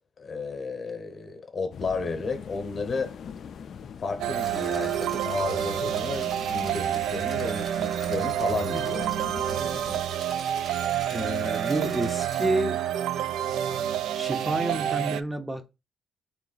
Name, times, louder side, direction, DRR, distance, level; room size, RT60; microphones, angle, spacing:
voice 1, 0.2-3.2 4.0-9.2, left 4 dB, 40° left, 0.9 m, -33 dB
sound 1, 1.7-10.0, left 7 dB, 60° left, 0.3 m, -43 dB
sound 2, 4.2-15.2, right 11 dB, 85° right, 0.3 m, -28 dB
sound 3, 4.4-12.5, right 2 dB, 40° right, 1.2 m, -45 dB
voice 2, 11.1-12.8 14.1-15.8, right 2 dB, 15° right, 0.7 m, -29 dB
3.7 x 3.1 x 3.9 m
cardioid pair, 90°, 0 cm